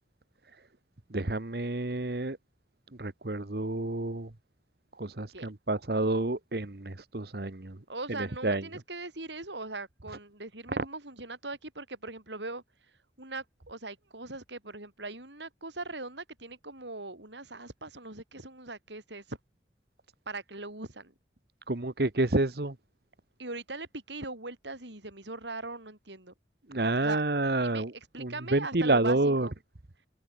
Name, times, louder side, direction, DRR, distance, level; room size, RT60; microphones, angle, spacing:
voice 1, 1.1-2.4 3.0-4.3 5.0-7.8 8.1-8.6 10.8-10.9 21.7-22.7 26.7-27.9 28.2-29.5, right 2 dB, 60° right, 1.3 m, -29 dB
voice 2, 7.9-12.6 13.2-19.4 20.3-21.1 23.4-26.3 27.0-27.2 27.6-27.8 28.1-29.5, right 3 dB, 85° right, 6.5 m, -40 dB
head